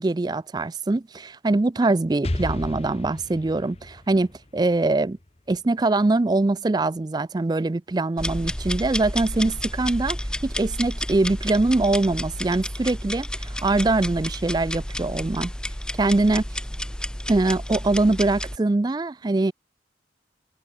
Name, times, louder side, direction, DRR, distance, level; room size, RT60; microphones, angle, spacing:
voice 1, 0.0-5.2 5.5-15.5 16.0-16.4 17.3-19.5, right 2 dB, 20° right, 0.4 m, -23 dB
Explosion, 2.2-6.0, left 1 dB, 35° left, 1.2 m, -34 dB
sound 1, 8.2-18.6, left 1 dB, 5° left, 1.1 m, -31 dB
head